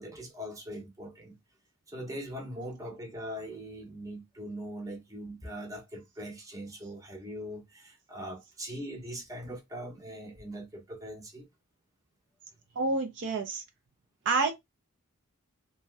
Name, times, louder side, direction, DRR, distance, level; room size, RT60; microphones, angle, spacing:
voice 1, 0.0-1.4 1.9-11.5, equal, 15° right, 0.7 m, -41 dB
voice 2, 12.7-13.6 14.2-14.5, right 3 dB, 55° right, 0.5 m, -28 dB
2.6 x 2.2 x 3.2 m
head